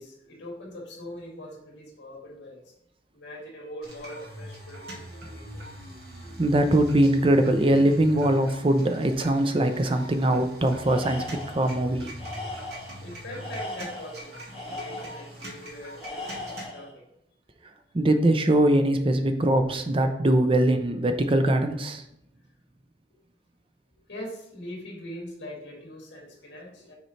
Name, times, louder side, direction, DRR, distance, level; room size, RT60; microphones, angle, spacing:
voice 1, 0.0-2.7 3.1-5.6 13.0-17.0 24.1-27.0, equal, 70° left, -1 dB, 2.2 m, -42 dB
sound 1, 3.8-16.6, right 1 dB, 60° right, 1.8 m, -42 dB
voice 2, 6.4-12.1 17.9-22.0, right 1 dB, 30° right, 7 dB, 0.5 m, -22 dB
Tools, 10.8-11.7 12.2-13.0 13.4-15.3 16.0-16.9, left 2 dB, 5° right, 2.4 m, -38 dB
6.6 x 4.4 x 3.2 m, 0.77 s
head